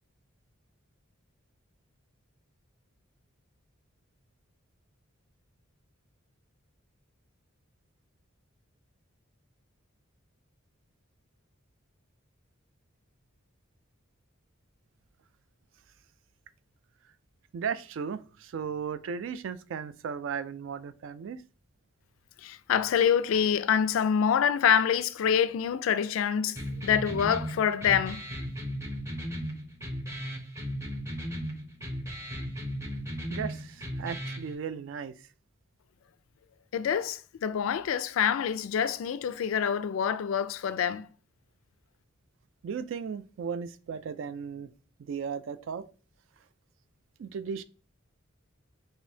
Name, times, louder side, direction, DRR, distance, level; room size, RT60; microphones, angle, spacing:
voice 1, 17.5-21.4 33.3-35.1 42.6-44.7 45.0-45.9 47.2-47.6, right 6 dB, 65° right, 0.3 m, -36 dB
voice 2, 22.4-26.6 26.8-28.2 36.7-41.1, left 8 dB, 75° left, 0.3 m, -26 dB
sound 1, 26.5-34.5, equal, 15° right, 0.7 m, -36 dB
4.9 x 2.6 x 2.7 m
head